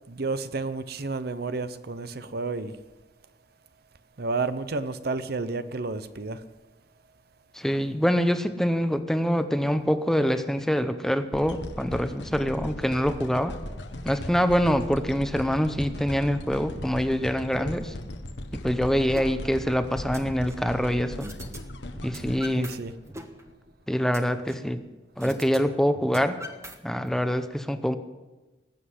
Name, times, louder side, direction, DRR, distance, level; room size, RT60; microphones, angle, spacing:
voice 1, 0.1-2.7 4.2-6.4 22.6-22.9, right 3 dB, 60° right, 12 dB, 0.8 m, -31 dB
voice 2, 7.5-13.6 14.0-17.9 18.5-21.3 22.0-22.7 23.9-24.8 25.2-26.4 26.8-28.0, equal, 5° left, 9 dB, 0.7 m, -25 dB
sound 1, 11.3-23.5 24.1-24.2, left 1 dB, 80° left, 1.2 m, -38 dB
sound 2, 19.2-19.3 19.7-20.7 21.2-21.6 21.9-22.8 23.1-24.7 25.2-25.6 25.9-27.2, equal, 15° right, 1.2 m, -41 dB
19.5 x 7.8 x 7.9 m, 1.2 s
head